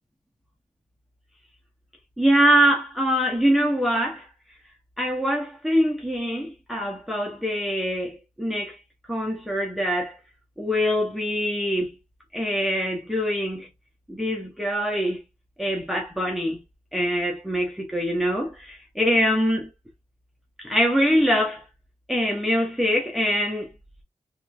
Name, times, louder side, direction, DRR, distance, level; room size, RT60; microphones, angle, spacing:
voice 1, 2.2-4.3 5.0-8.8 9.1-10.2 10.6-11.9 12.3-13.7 14.1-15.2 15.6-16.6 16.9-19.7 20.6-21.6 22.1-23.7, equal, ahead, 0.8 m, -23 dB
3.2 x 3.1 x 2.3 m
wide cardioid pair, 80°, 11 cm